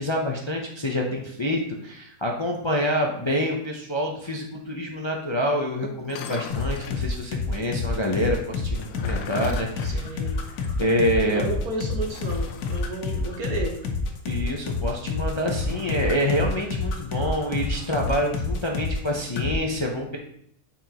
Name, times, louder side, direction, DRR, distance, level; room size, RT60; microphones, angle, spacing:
voice 1, 0.0-10.1 10.8-11.4 14.3-20.2, equal, 30° left, -1 dB, 0.5 m, -27 dB
sound 1, 6.0-7.1 8.6-10.8 11.1-11.2 12.0-12.9 15.4-16.4 17.7-18.4, left 7 dB, 70° left, 1.0 m, -39 dB
sound 2, 6.5-19.1 19.4-19.6, left 3 dB, 85° left, 1.5 m, -28 dB
voice 2, 9.8-10.4 11.3-13.8, right 2 dB, 75° right, 1 dB, 1.7 m, -32 dB
7.9 x 5.5 x 2.9 m, 0.70 s
omnidirectional pair, 1.6 m